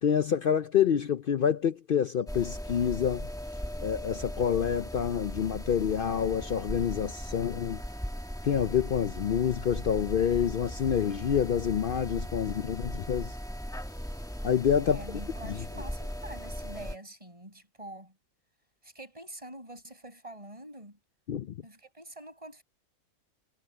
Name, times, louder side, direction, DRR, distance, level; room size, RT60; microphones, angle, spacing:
voice 1, 0.0-3.3 3.8-7.8 8.4-13.4 14.4-15.0 15.4-15.6 21.3-21.5, left 8 dB, 65° left, 0.5 m, -27 dB
sound 1, 2.3-17.0, equal, 5° left, 1.3 m, -38 dB
voice 2, 14.8-18.1 18.8-21.0 21.6-22.6, right 1 dB, 20° right, 6.4 m, -46 dB
omnidirectional pair, 1.5 m